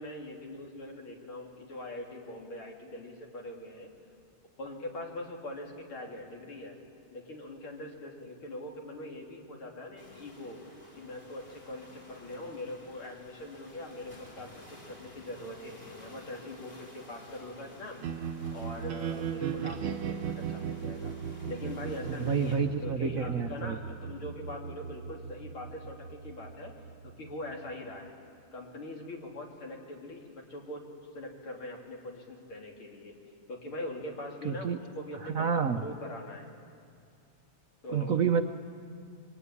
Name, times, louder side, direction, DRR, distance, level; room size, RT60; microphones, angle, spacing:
voice 1, 0.0-3.9 4.6-6.8 7.1-10.6 11.0-18.0 18.5-21.1 21.5-26.7 27.2-28.1 28.5-30.8 31.1-33.1 33.5-36.5 37.8-38.1, left 1 dB, 85° left, 0 dB, 4.1 m, -42 dB
sound 1, 10.0-22.6, left 1 dB, 45° left, 6.1 m, -52 dB
sound 2, 18.0-28.1, right 7 dB, 85° right, 1.7 m, -38 dB
voice 2, 22.1-23.8 34.4-34.8 35.2-35.8 37.9-38.4, right 6 dB, 60° right, 6 dB, 0.9 m, -29 dB
26.0 x 23.0 x 9.8 m, 2.3 s
omnidirectional pair, 2.2 m